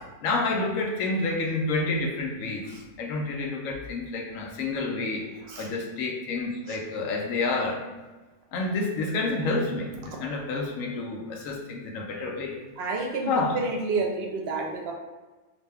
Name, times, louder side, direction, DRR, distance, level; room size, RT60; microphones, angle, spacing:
voice 1, 0.2-2.7 3.0-5.2 5.6-7.8 8.5-12.5 13.3-13.6, left 3 dB, 70° left, 0 dB, 1.0 m, -29 dB
voice 2, 12.8-14.9, right 3 dB, 60° right, 0 dB, 0.7 m, -30 dB
4.8 x 2.2 x 3.4 m, 1.2 s
omnidirectional pair, 1.6 m